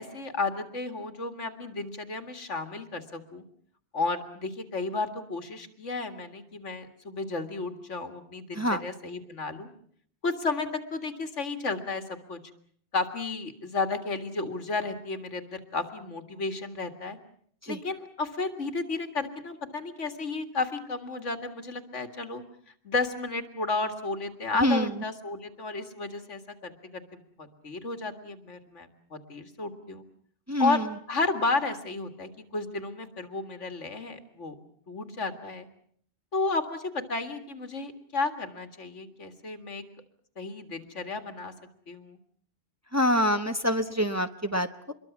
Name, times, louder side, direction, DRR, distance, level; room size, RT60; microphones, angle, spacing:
voice 1, 0.0-3.4 3.9-9.7 10.2-12.4 12.9-17.2 17.7-22.4 22.8-30.0 30.6-30.8 31.1-34.6 34.9-35.7 36.3-39.8 40.4-41.5 41.9-42.2, left 3 dB, 90° left, 8 dB, 2.5 m, -32 dB
voice 2, 30.5-30.9 42.9-44.9, equal, 15° right, 7 dB, 1.0 m, -26 dB
26.0 x 22.0 x 7.3 m, 0.62 s
omnidirectional pair, 1.2 m